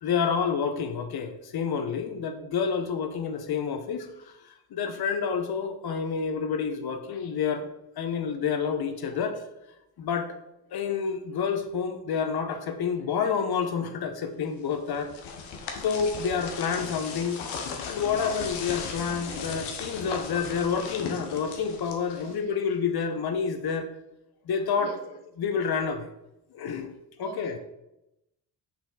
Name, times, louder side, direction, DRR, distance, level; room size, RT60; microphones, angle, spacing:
voice 1, 0.0-7.7 8.0-9.4 10.0-10.4 10.7-15.1 15.8-17.4 17.8-23.9 24.5-24.9 25.4-26.1 26.5-26.9 27.2-27.6, left 6 dB, 55° left, 8 dB, 0.9 m, -29 dB
sound 1, 14.7-22.5, left 5 dB, 85° left, 1.0 m, -37 dB
voice 2, 22.2-22.6 24.8-25.2 27.2-27.6, right 6 dB, 60° right, 5 dB, 1.1 m, -44 dB
5.9 x 4.5 x 3.8 m, 0.90 s
hypercardioid pair, 55°, 46 cm